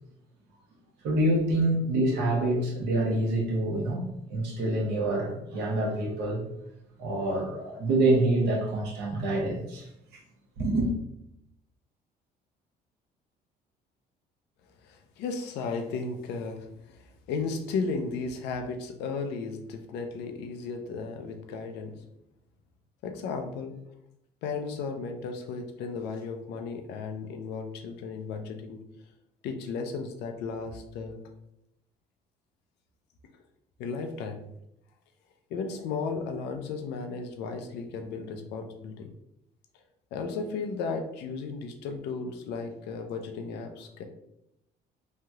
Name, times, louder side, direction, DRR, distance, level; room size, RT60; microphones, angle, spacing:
voice 1, 1.0-6.4 7.0-9.9 10.6-10.9, right 1 dB, 80° right, -2 dB, 0.9 m, -26 dB
voice 2, 14.8-22.0 23.0-23.7 24.4-28.8 29.4-31.2 33.8-34.4 35.5-39.1 40.1-44.0, left 4 dB, 80° left, 5 dB, 0.5 m, -35 dB
3.2 x 2.8 x 2.3 m, 0.81 s
cardioid pair, 110°, 17 cm